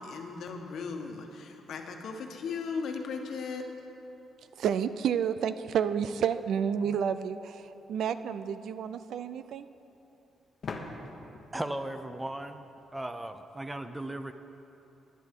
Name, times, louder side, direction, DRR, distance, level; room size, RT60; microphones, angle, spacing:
voice 1, 0.0-3.6, left 5 dB, 65° left, 3 dB, 1.2 m, -37 dB
voice 2, 4.6-9.7, right 8 dB, 65° right, 12 dB, 0.4 m, -30 dB
sound 1, 7.6-7.7 10.6-13.3, left 3 dB, 40° left, 1.0 m, -44 dB
voice 3, 11.5-12.6 12.9-14.3, right 1 dB, 10° right, 9 dB, 0.4 m, -36 dB
19.5 x 10.5 x 3.7 m, 2.9 s
cardioid pair, 160°, 0 cm